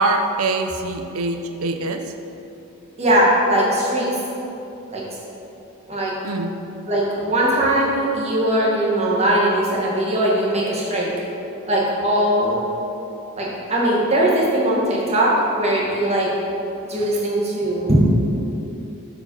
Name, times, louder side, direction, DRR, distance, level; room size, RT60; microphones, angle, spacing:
voice 1, 0.0-2.1 6.2-6.6, right 2 dB, 75° right, 6 dB, 0.6 m, -23 dB
voice 2, 3.0-4.1 4.9-5.0 5.9-6.1 6.9-11.1 11.7-12.6 13.4-16.3 16.8-18.0, right 1 dB, 30° right, -5 dB, 1.5 m, -20 dB
7.7 x 5.0 x 5.4 m, 2.9 s
head